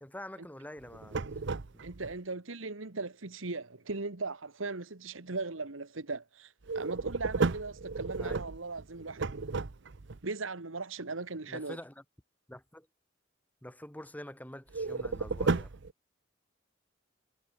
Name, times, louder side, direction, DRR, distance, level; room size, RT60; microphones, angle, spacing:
voice 1, 0.0-1.4 1.7-1.8 8.1-8.5 11.5-12.0 12.5-12.9 13.6-15.7, left 1 dB, 10° left, 1.9 m, -46 dB
sound 1, 0.8-2.1 6.6-10.2 14.7-15.9, right 4 dB, 65° right, 0.8 m, -33 dB
voice 2, 1.8-9.4 10.2-11.8, right 3 dB, 85° right, 1.6 m, -38 dB
head